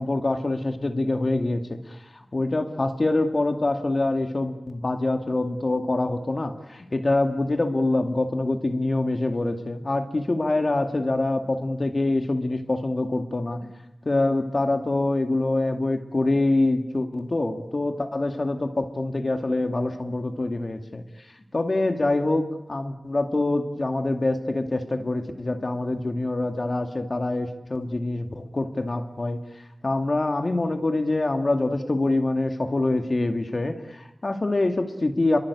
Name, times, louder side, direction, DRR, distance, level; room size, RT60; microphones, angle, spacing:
voice 1, 0.0-2.0 2.3-13.6 14.0-21.0 21.5-29.4 29.8-35.4, left 2 dB, 55° left, 5 dB, 2.3 m, -25 dB
29.5 x 23.0 x 8.5 m, 0.93 s
wide cardioid pair, 70°, 0 cm